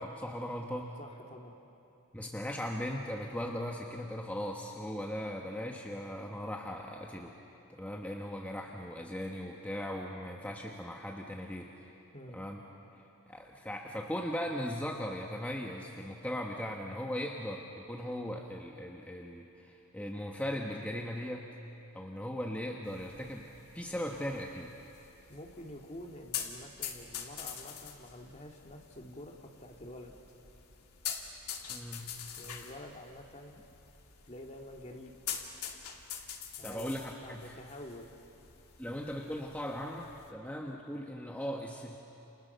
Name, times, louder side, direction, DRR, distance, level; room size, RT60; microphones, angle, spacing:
voice 1, 0.0-1.0 2.1-7.4 7.7-11.7 12.3-12.6 13.3-21.5 21.9-24.7 31.7-32.2 36.6-37.6 38.8-42.0, equal, 5° left, 0 dB, 1.3 m, -38 dB
voice 2, 1.0-1.6 12.1-12.4 25.3-30.1 32.4-33.6 34.3-35.1 36.6-38.1, left 1 dB, 30° left, 1 dB, 2.4 m, -48 dB
sound 1, 22.8-40.3, left 8 dB, 85° left, 2.5 m, -45 dB
29.5 x 29.5 x 6.8 m, 2.8 s
head